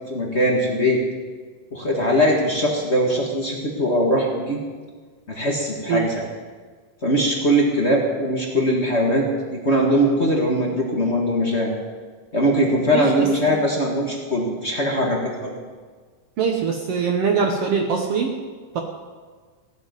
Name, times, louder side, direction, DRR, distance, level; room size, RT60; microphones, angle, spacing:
voice 1, 0.1-1.0 1.7-4.6 5.3-6.2 7.0-11.7 12.3-15.6, equal, 45° left, -1 dB, 0.8 m, -21 dB
voice 2, 12.9-13.6 16.4-18.4 18.7-18.8, right 6 dB, 75° right, 3 dB, 1.4 m, -23 dB
16.0 x 7.5 x 9.3 m, 1.5 s
omnidirectional pair, 4.1 m